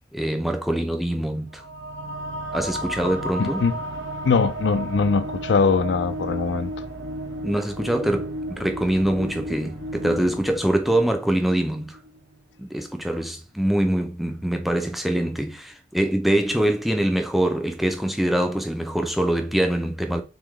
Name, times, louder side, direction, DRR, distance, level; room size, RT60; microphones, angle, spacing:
voice 1, 0.1-1.6 2.5-3.6 7.4-12.0 12.6-20.2, right 1 dB, ahead, 0.4 m, -24 dB
sound 1, 1.5-12.4, right 1 dB, 85° right, 1.1 m, -34 dB
voice 2, 3.4-3.7 4.2-6.7, left 4 dB, 70° left, 0.4 m, -21 dB
3.9 x 3.7 x 3.1 m
head